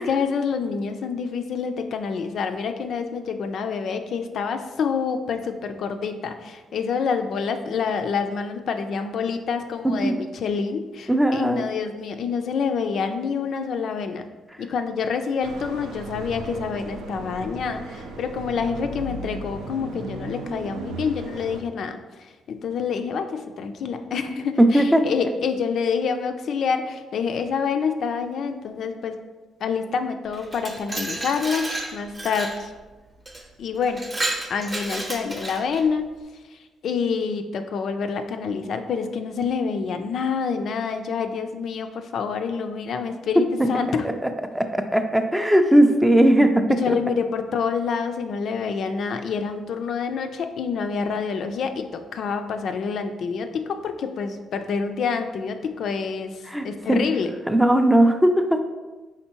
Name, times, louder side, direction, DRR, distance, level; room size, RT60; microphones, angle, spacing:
voice 1, 0.0-14.2 14.6-29.2 29.6-32.7 33.6-34.0 34.5-36.1 36.8-44.1 46.7-57.3, left 5 dB, 65° left, 7 dB, 0.3 m, -27 dB
voice 2, 11.1-11.7 24.7-25.1 43.4-43.5 44.5-47.0 56.5-57.0 57.5-58.6, right 1 dB, 5° right, 6 dB, 0.4 m, -18 dB
sound 1, 15.4-21.6, right 2 dB, 85° right, 0.4 m, -36 dB
Glass, 30.3-32.6 33.3-33.4 33.8-35.8, right 2 dB, 30° right, 0.7 m, -31 dB
4.4 x 3.5 x 2.9 m, 1.2 s
cardioid pair, 90°, 0 cm